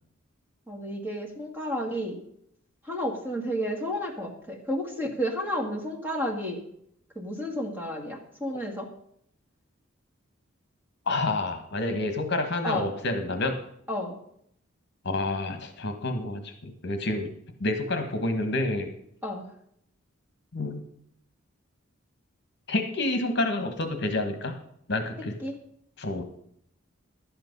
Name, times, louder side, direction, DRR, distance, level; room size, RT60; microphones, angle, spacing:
voice 1, 0.7-2.2 2.9-6.6 7.2-8.9 12.6-12.9 13.9-14.2 19.2-19.5 25.4-25.6, equal, 10° right, 0 dB, 2.0 m, -31 dB
voice 2, 11.1-13.6 15.0-17.3 17.6-18.9 20.5-20.8 22.7-24.6 24.9-25.4 26.0-26.2, left 2 dB, 55° left, 7 dB, 1.4 m, -28 dB
11.5 x 8.9 x 5.4 m, 0.69 s
head